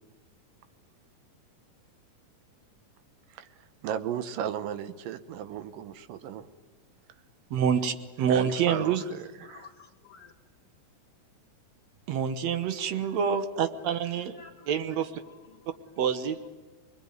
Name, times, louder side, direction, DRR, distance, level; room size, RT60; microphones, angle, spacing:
voice 1, 3.8-6.5 8.3-9.7, right 9 dB, 85° right, 11 dB, 2.7 m, -35 dB
voice 2, 7.5-9.0 12.1-14.4 14.7-15.2 16.0-16.5, right 7 dB, 65° right, 10 dB, 2.1 m, -27 dB
voice 3, 9.4-10.3 12.6-13.2 14.3-14.8 15.2-15.8, left 5 dB, 70° left, 4 dB, 1.4 m, -53 dB
25.0 x 20.5 x 9.4 m, 1.3 s
omnidirectional pair, 3.8 m